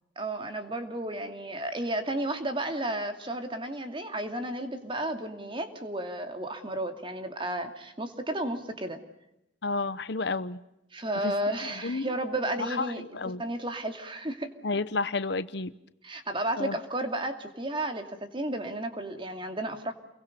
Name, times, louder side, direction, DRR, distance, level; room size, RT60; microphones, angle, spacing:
voice 1, 0.2-9.0 10.9-13.1 13.4-14.5 16.0-19.9, right 1 dB, 25° right, 6 dB, 2.6 m, -33 dB
voice 2, 9.6-10.6 11.2-11.4 11.8-12.1 12.6-13.4 14.6-15.7 16.6-16.7, left 3 dB, 60° left, 15 dB, 0.9 m, -31 dB
29.5 x 23.0 x 6.7 m, 0.85 s
head